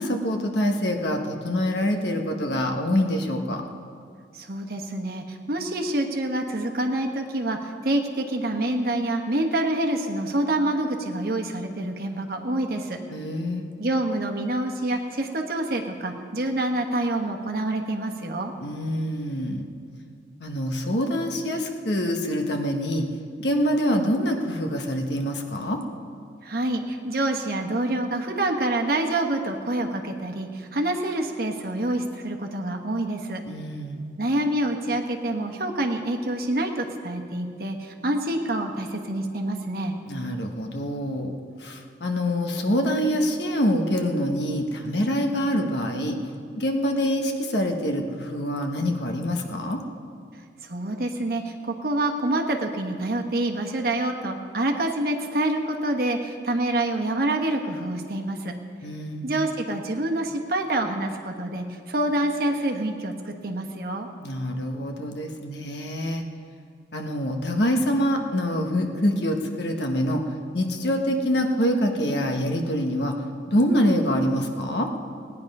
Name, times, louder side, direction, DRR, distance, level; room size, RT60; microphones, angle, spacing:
voice 1, 0.0-3.6 13.1-13.7 18.6-19.7 20.4-23.1 23.4-25.8 33.4-34.0 40.0-41.3 41.6-46.2 46.6-49.8 58.8-59.3 64.2-66.2 66.9-70.3 70.5-73.2 73.5-74.9, equal, 70° left, 4 dB, 1.2 m, -25 dB
voice 2, 4.3-13.0 13.8-18.5 26.4-33.4 34.2-39.9 50.6-58.5 59.2-64.1, right 1 dB, 55° right, 2 dB, 1.2 m, -27 dB
17.5 x 9.7 x 5.4 m, 2.2 s
head